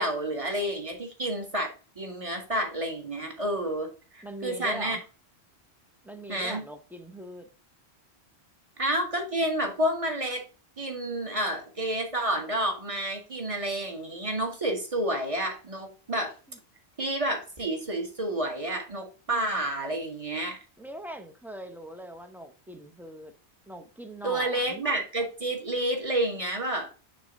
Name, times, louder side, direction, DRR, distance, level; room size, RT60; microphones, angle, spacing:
voice 1, 0.0-5.0 6.3-6.6 8.8-10.4 10.8-16.3 17.0-20.6 24.2-26.9, right 1 dB, 30° right, 1.4 m, -30 dB
voice 2, 4.2-5.0 6.0-7.5 16.5-16.6 20.8-23.3 23.7-24.9, right 1 dB, ahead, 0.5 m, -41 dB
6.3 x 3.1 x 5.2 m
omnidirectional pair, 1.1 m